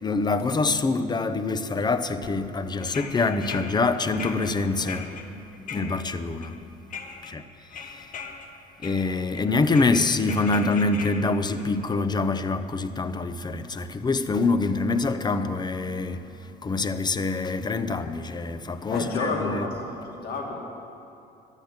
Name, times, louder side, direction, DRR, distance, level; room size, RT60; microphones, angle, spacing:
voice 1, 0.0-5.2 5.7-6.6 7.3-7.4 8.8-16.3 16.6-19.6, left 3 dB, 25° left, 0.8 m, -25 dB
sound 1, 2.8-6.5 6.9-7.3 7.7-8.5 8.8-9.4 9.7-12.4 13.4-13.5 14.5-14.7 15.0-15.1, left 5 dB, 50° left, 1.4 m, -39 dB
voice 2, 18.9-20.6, left 3 dB, 70° left, 2.3 m, -30 dB
12.0 x 10.5 x 8.1 m
cardioid pair, 110°, 17 cm